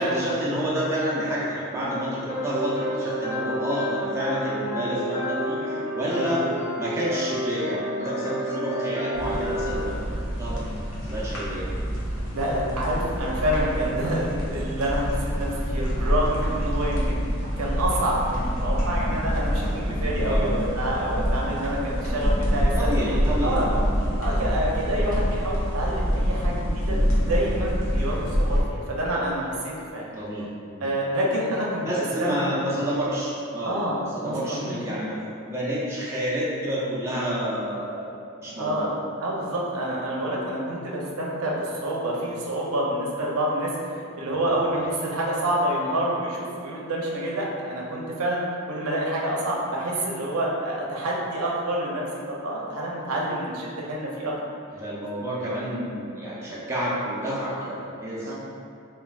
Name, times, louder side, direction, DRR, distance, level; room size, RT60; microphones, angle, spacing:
voice 1, 0.0-6.5 6.8-10.6 11.0-11.7 20.2-20.6 22.8-23.9 30.1-30.9 31.8-38.1 38.3-38.9 44.3-44.8 54.7-58.3, equal, 10° right, -8 dB, 0.4 m, -29 dB
sound 1, 2.3-9.9, equal, 30° left, 0.7 m, -30 dB
sound 2, 9.1-28.6, equal, 70° left, 0.6 m, -26 dB
voice 2, 12.3-17.2 17.6-23.6 24.2-30.1 30.8-31.8 32.2-32.6 33.6-34.0 34.2-34.8 38.6-38.9 39.2-48.4 48.7-54.3 58.2-58.3, right 1 dB, 85° right, -3 dB, 0.5 m, -28 dB
2.3 x 2.3 x 3.3 m, 2.4 s
head